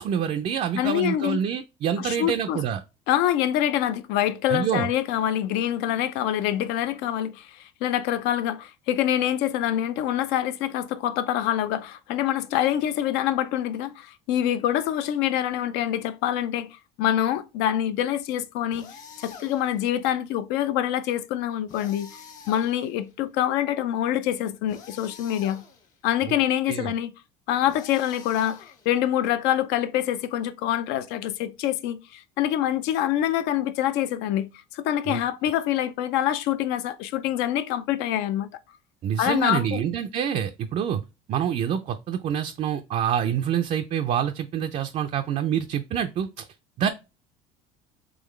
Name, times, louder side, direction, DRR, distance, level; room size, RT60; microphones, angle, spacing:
voice 1, 0.0-2.8 4.5-4.9 26.7-26.9 35.1-35.2 39.0-41.0 41.3-46.5 46.8-46.9, right 9 dB, 40° right, 0.4 m, -26 dB
voice 2, 0.7-1.4 2.0-2.6 3.1-16.7 17.0-18.9 19.2-22.2 22.5-25.6 26.0-27.1 27.5-38.5 39.2-39.8, left 11 dB, 75° left, 0.6 m, -25 dB
sound 1, 18.7-19.9 21.7-23.1 24.7-26.0 27.7-29.1, left 6 dB, 45° left, 1.1 m, -46 dB
3.9 x 3.0 x 3.1 m
cardioid pair, 115°, 18 cm